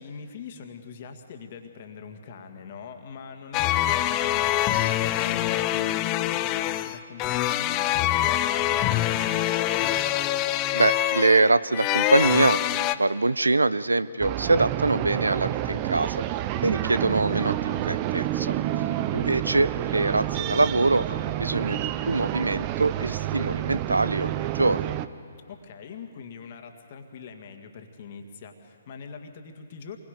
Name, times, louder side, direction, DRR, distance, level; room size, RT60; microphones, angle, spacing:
voice 1, 0.0-9.6 18.8-19.1 25.5-30.0, left 6 dB, 45° left, 5 dB, 2.1 m, -43 dB
sound 1, 3.5-12.9, left 14 dB, 25° left, 0.6 m, -25 dB
voice 2, 10.7-16.2 16.6-18.6 19.1-24.9, right 2 dB, 85° right, 17 dB, 0.6 m, -24 dB
sound 2, 14.2-25.1, right 13 dB, 30° right, 0.6 m, -29 dB
27.5 x 21.5 x 5.3 m, 2.4 s
figure-of-eight pair, 130°, 0 cm